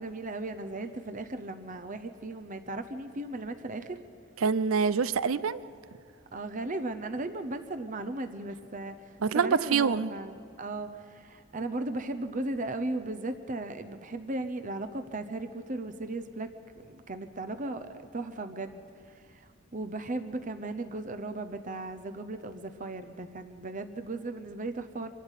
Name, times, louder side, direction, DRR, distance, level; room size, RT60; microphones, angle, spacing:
voice 1, 0.0-4.0 6.3-16.5 16.8-18.8 19.1-25.1, right 2 dB, 40° right, 9 dB, 0.8 m, -36 dB
voice 2, 4.4-5.6 9.2-10.1, right 5 dB, 75° right, 17 dB, 0.5 m, -25 dB
26.0 x 12.0 x 8.2 m, 2.4 s
head